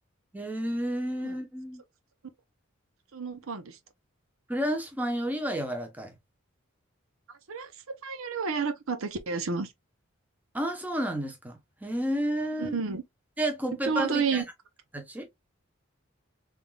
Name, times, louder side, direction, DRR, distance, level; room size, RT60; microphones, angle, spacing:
voice 1, 0.3-1.8 4.5-6.2 10.5-12.8 13.4-14.4 14.9-15.3, right 1 dB, 10° right, 0.8 m, -31 dB
voice 2, 3.1-3.8 7.5-9.7 12.6-13.0 13.9-14.4, right 5 dB, 80° right, 0.8 m, -30 dB
3.6 x 3.5 x 2.3 m
head